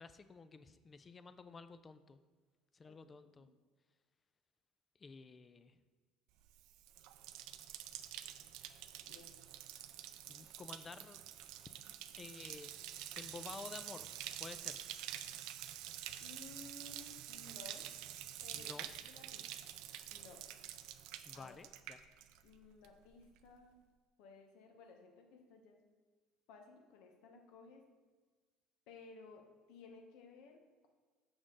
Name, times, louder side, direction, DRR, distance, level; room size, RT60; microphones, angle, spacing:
voice 1, 0.0-2.2 2.7-3.5 5.0-5.8 10.3-11.2 12.2-12.7 13.1-14.1 14.4-15.1 18.5-18.9 21.2-22.0, left 4 dB, 25° left, 11 dB, 0.4 m, -52 dB
Bathtub (filling or washing), 6.5-22.6 22.8-23.4, right 12 dB, 70° right, 0.4 m, -48 dB
voice 2, 9.1-9.4 16.2-17.9 18.4-19.7 20.1-20.5 21.3-21.6 22.4-23.8 24.2-25.8 26.5-27.9 28.9-30.6, left 3 dB, 75° left, 3 dB, 1.1 m, -57 dB
6.2 x 6.1 x 3.8 m, 1.4 s
supercardioid pair, 115°, 0 cm